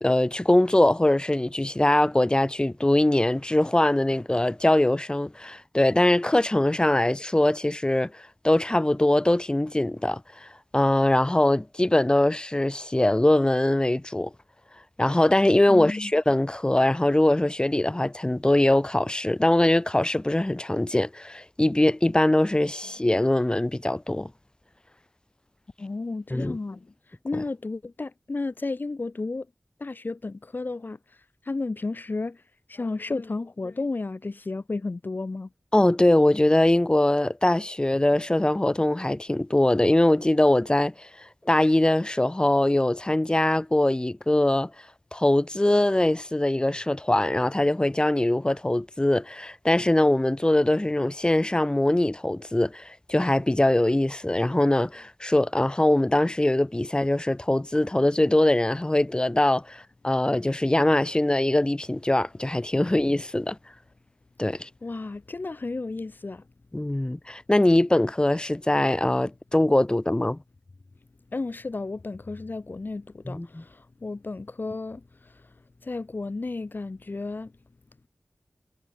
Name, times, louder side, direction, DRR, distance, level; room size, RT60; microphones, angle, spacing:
voice 1, 0.0-14.3 15.0-24.3 26.3-26.6 35.7-44.7 45.1-63.6 64.4-64.7 66.7-70.4 73.2-73.6, left 1 dB, 20° left, 2.7 m, -22 dB
voice 2, 15.7-16.1 25.8-26.9 27.2-29.5 29.8-31.0 31.4-32.4 32.7-35.5 64.8-66.4 71.3-75.4 75.8-77.5, left 3 dB, 55° left, 3.2 m, -33 dB
wide cardioid pair, 70°, 4 cm